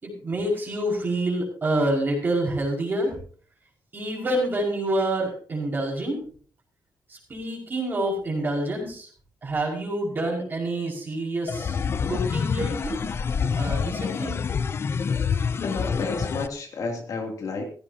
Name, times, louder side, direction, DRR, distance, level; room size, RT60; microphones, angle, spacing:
voice 1, 0.0-3.1 3.9-6.2 7.1-9.1 9.4-11.7 12.1-13.0 13.6-14.4, right 1 dB, 25° right, -1 dB, 5.3 m, -27 dB
sound 1, 11.5-16.5, left 6 dB, 35° left, 0.6 m, -27 dB
voice 2, 15.6-17.7, left 3 dB, 50° left, 2 dB, 2.8 m, -31 dB
16.0 x 15.0 x 2.8 m, 0.44 s
wide cardioid pair, 160°, 7 cm